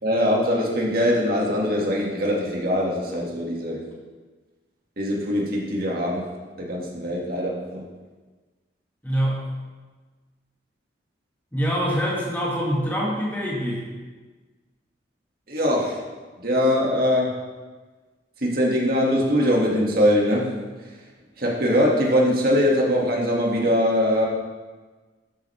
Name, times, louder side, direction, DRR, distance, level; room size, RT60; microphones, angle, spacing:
voice 1, 0.0-3.8 5.0-6.2 6.6-7.8 15.5-16.0 16.4-17.3 18.4-20.5 20.8-20.9 21.4-24.3, equal, 50° right, -3 dB, 2.3 m, -22 dB
voice 2, 9.0-9.5 11.5-13.9, equal, 10° left, -5 dB, 1.9 m, -25 dB
12.5 x 9.2 x 3.6 m, 1.3 s
head